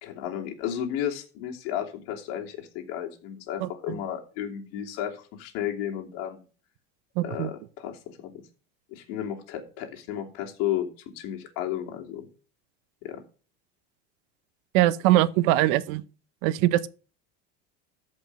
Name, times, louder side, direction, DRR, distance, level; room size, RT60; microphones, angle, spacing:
voice 1, 0.0-6.4 7.2-8.4 8.9-10.9 11.1-12.3 13.0-13.2, left 10 dB, 75° left, 2.9 m, -33 dB
voice 2, 7.2-7.5 14.7-16.0 16.4-16.9, right 15 dB, 75° right, 0.9 m, -22 dB
13.5 x 5.5 x 5.4 m
cardioid pair, 160°, 29 cm